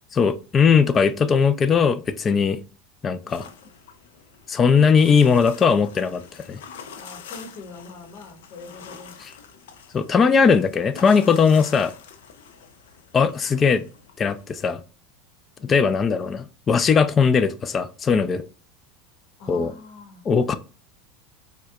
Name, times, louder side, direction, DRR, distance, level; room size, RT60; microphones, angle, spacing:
voice 1, 0.1-2.6 3.0-3.4 4.5-6.2 6.5-6.6 9.9-11.9 13.1-13.8 14.2-14.8 15.7-18.4 19.5-19.7 20.3-20.5, left 6 dB, 25° left, 0.4 m, -19 dB
voice 2, 3.0-3.7 6.9-9.2 13.7-13.9 15.6-15.8 19.4-20.2, left 3 dB, 60° left, 1.0 m, -43 dB
sound 1, 3.3-14.7, left 7 dB, 85° left, 0.5 m, -45 dB
4.4 x 2.2 x 2.3 m
supercardioid pair, 110°, 0 cm